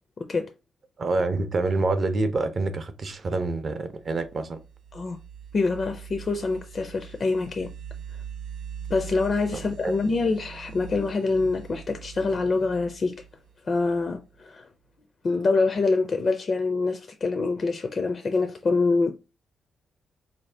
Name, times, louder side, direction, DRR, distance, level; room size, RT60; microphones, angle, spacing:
voice 1, 0.2-0.5 4.9-5.2 5.5-7.7 8.9-13.2 13.7-14.7 15.2-19.1, left 3 dB, 35° left, 0.4 m, -25 dB
voice 2, 1.0-4.6 9.8-9.9, right 3 dB, 35° right, 0.5 m, -26 dB
sound 1, 3.8-14.4, right 8 dB, 80° right, 0.6 m, -42 dB
4.1 x 2.6 x 3.2 m
wide cardioid pair, 160°, 0 cm